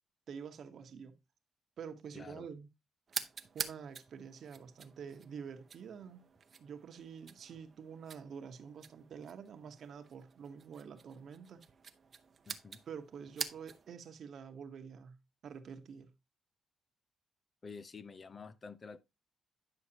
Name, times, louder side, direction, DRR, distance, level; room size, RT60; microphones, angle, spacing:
voice 1, 0.3-1.1 1.8-2.7 3.5-6.3 6.6-11.6 12.9-16.1, right 7 dB, 60° right, 1.1 m, -48 dB
voice 2, 2.1-2.5 12.5-12.8 17.6-19.0, left 5 dB, 35° left, 0.5 m, -49 dB
sound 1, 3.1-14.0, right 6 dB, 45° right, 0.7 m, -47 dB
9.8 x 6.4 x 2.8 m
cardioid pair, 115°, 0 cm